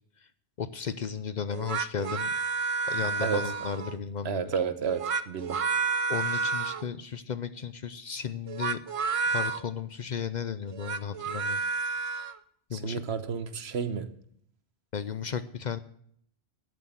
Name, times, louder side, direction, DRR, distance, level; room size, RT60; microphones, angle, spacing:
voice 1, 0.6-2.3 2.9-4.5 6.1-8.8 9.2-11.6 12.7-13.0 14.9-15.8, left 7 dB, 50° left, 13 dB, 0.6 m, -34 dB
sound 1, 1.5-4.0 4.8-6.9 8.5-9.6 10.7-12.4, right 4 dB, 45° right, 0.5 m, -30 dB
voice 2, 4.2-5.0 5.3-5.6 12.7-14.1, right 6 dB, 75° right, 10 dB, 1.2 m, -30 dB
12.0 x 7.8 x 7.3 m, 0.66 s
omnidirectional pair, 1.1 m